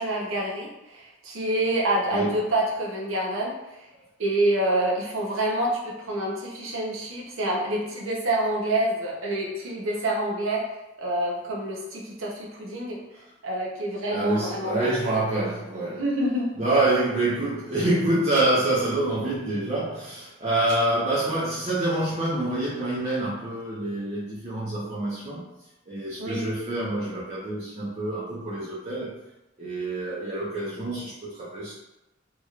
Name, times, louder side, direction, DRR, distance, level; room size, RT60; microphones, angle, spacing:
voice 1, 0.0-3.9 4.2-10.6 11.0-13.0 13.4-14.9 16.0-16.6 26.2-26.5, right 1 dB, 80° right, -3 dB, 0.8 m, -27 dB
voice 2, 14.1-16.0 16.6-25.4 25.9-29.1 29.6-31.7, right 2 dB, 35° right, -9 dB, 0.7 m, -26 dB
3.1 x 2.9 x 2.4 m, 0.94 s
head